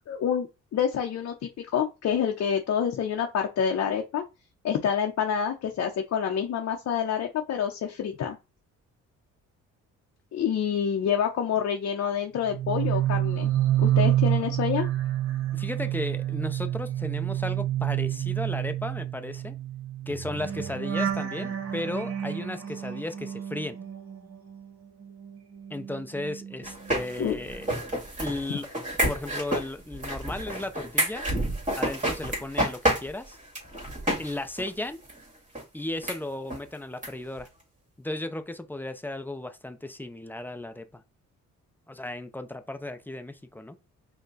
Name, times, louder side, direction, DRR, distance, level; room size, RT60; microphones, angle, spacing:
voice 1, 0.1-4.2 4.6-8.4 10.3-13.5 13.8-14.9 27.2-27.4, left 8 dB, 55° left, 0.7 m, -27 dB
sound 1, 12.4-24.7 25.0-27.1 27.4-27.7, right 12 dB, 45° right, 1.2 m, -29 dB
voice 2, 15.5-19.6 20.1-23.8 25.7-27.7 28.2-28.7 29.1-31.3 31.7-33.4 34.2-35.0 35.7-37.5 38.0-41.0 41.9-43.8, left 1 dB, 5° left, 0.6 m, -35 dB
sound 2, 26.6-34.3 34.6-34.7 35.1-35.2 35.5-35.6 36.0-36.2 36.5-36.6 37.0-37.1 37.4-37.5, right 1 dB, 25° right, 2.0 m, -29 dB
5.2 x 2.2 x 3.9 m
cardioid pair, 90°, 30 cm